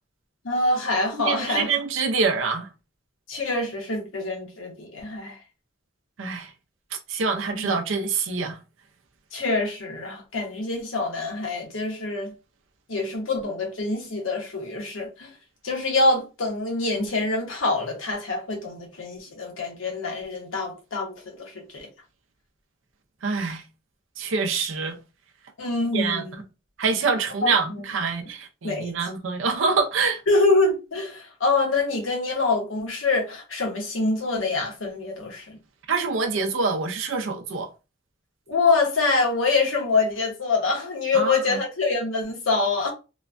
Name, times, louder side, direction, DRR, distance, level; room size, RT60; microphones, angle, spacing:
voice 1, 0.4-1.7 3.3-5.4 7.5-7.7 9.3-12.3 12.9-15.3 15.6-21.9 25.6-26.4 27.4-27.8 28.6-28.9 30.3-35.6 38.5-42.9, left 3 dB, 90° left, 1.1 m, -25 dB
voice 2, 1.1-2.7 6.2-6.5 6.9-8.6 23.2-23.6 24.2-25.0 25.9-26.2 26.8-30.2 35.9-37.7 41.1-41.6, right 4 dB, 80° right, 0.6 m, -25 dB
3.0 x 2.2 x 2.5 m
head